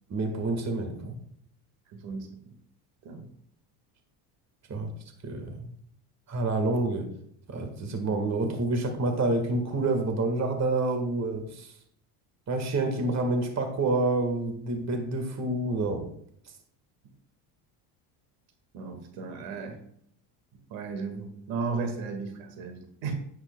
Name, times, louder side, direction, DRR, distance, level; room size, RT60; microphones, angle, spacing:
voice 1, 0.1-1.2 4.7-4.9 5.2-5.7 6.3-7.1 7.5-11.7 12.5-16.1, right 2 dB, 35° right, 1.7 m, -28 dB
voice 2, 1.9-2.3 3.1-3.2 18.7-19.8 20.7-23.1, right 4 dB, 70° right, 1.9 m, -35 dB
9.9 x 8.1 x 2.3 m
supercardioid pair, 100°, 47 cm